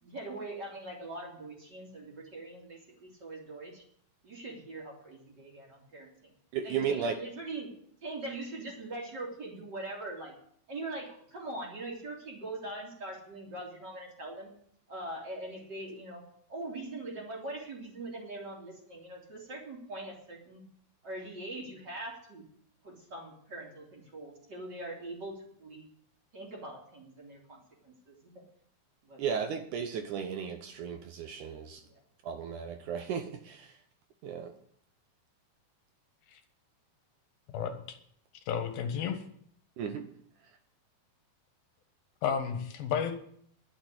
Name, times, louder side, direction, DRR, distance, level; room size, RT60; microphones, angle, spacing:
voice 1, 0.0-3.8 4.2-6.2 6.6-7.7 8.0-10.3 10.7-14.5 14.9-16.2 16.5-20.6 21.0-22.4 22.8-25.9 26.3-28.3 29.0-29.2 31.8-31.9, right 2 dB, 30° right, -2 dB, 3.7 m, -42 dB
voice 2, 6.5-7.2 29.2-31.8 32.2-33.8 34.2-34.5 39.8-40.1, right 7 dB, 70° right, 7 dB, 2.1 m, -35 dB
voice 3, 37.5-38.0 38.5-39.2 42.2-43.2, left 7 dB, 85° left, 7 dB, 3.3 m, -32 dB
11.5 x 7.2 x 9.6 m, 0.64 s
omnidirectional pair, 4.1 m